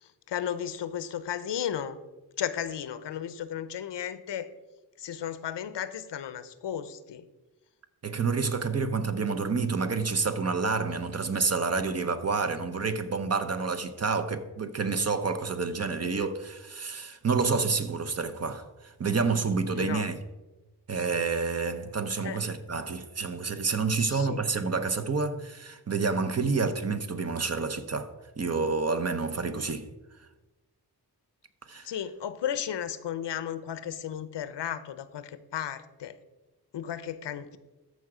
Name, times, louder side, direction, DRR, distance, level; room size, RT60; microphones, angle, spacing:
voice 1, 0.0-2.0 2.4-4.5 5.0-7.3 19.7-20.1 22.2-22.4 24.0-24.4 31.8-36.1 36.7-37.6, left 9 dB, 85° left, 0.7 m, -34 dB
voice 2, 8.0-20.2 20.9-28.1 28.4-29.9 31.7-31.9, right 4 dB, 40° right, 0.8 m, -29 dB
13.5 x 4.8 x 4.9 m
wide cardioid pair, 90°, 41 cm